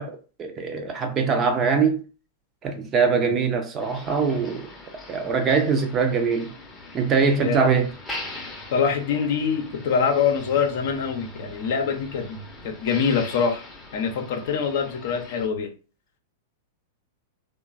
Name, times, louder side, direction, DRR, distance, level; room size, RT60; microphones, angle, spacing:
voice 1, 0.0-2.0 2.6-4.7 5.1-6.5 6.9-7.9, right 5 dB, 30° right, 0.5 m, -22 dB
Motor vehicle (road), 3.8-15.5, left 2 dB, 10° left, 0.7 m, -41 dB
voice 2, 7.4-7.7 8.7-12.4 12.6-13.6 13.9-15.7, left 6 dB, 55° left, 0.6 m, -24 dB
3.0 x 2.2 x 2.4 m
figure-of-eight pair, 95°, 0 cm